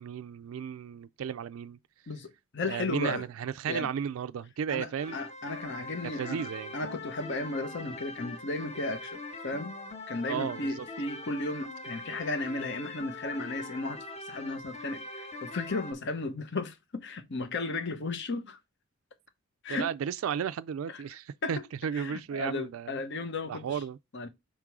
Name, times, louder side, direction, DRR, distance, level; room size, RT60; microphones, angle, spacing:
voice 1, 0.0-1.8 2.7-5.2 6.2-6.7 10.3-10.9 19.7-22.9 23.5-24.0, right 8 dB, 80° right, 0.3 m, -34 dB
voice 2, 2.1-3.3 3.7-3.9 4.7-9.8 10.1-18.6 19.6-19.9 20.9-21.0 21.4-21.6 21.9-23.8 24.1-24.3, left 2 dB, 60° left, 1.0 m, -35 dB
sound 1, 5.0-15.9, left 2 dB, 30° left, 1.1 m, -42 dB
6.0 x 3.7 x 4.6 m
head